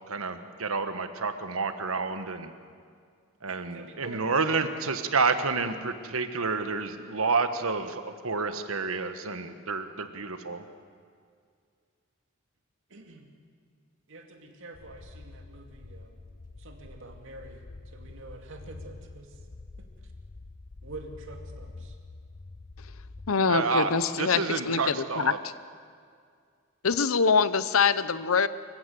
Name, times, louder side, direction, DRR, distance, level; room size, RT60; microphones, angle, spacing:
voice 1, 0.0-2.5 3.4-10.6 23.5-23.9 24.2-25.4, right 4 dB, 85° right, 9 dB, 1.4 m, -29 dB
voice 2, 3.5-4.4 12.9-13.3 14.1-16.2 16.6-17.6 17.9-19.3 19.8-19.9 20.8-22.0, right 2 dB, 65° right, 3 dB, 2.6 m, -46 dB
sound 1, 14.7-23.3, left 3 dB, 40° left, 0.6 m, -46 dB
voice 3, 23.3-25.3 26.8-28.5, left 5 dB, 80° left, 15 dB, 0.8 m, -24 dB
24.5 x 15.0 x 7.8 m, 2.2 s
head